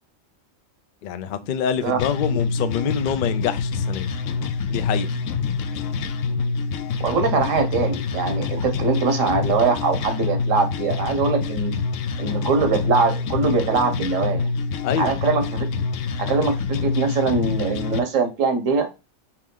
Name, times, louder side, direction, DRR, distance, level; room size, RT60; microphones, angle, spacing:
voice 1, 1.0-4.1 4.7-5.1 14.8-15.1, left 8 dB, 60° left, 0.5 m, -25 dB
sound 1, 2.0-18.0, left 4 dB, 80° left, 0.9 m, -26 dB
voice 2, 7.0-11.8 12.2-14.5 15.0-15.6 16.2-18.9, right 4 dB, 80° right, 1.2 m, -22 dB
4.6 x 3.1 x 3.7 m
omnidirectional pair, 1.3 m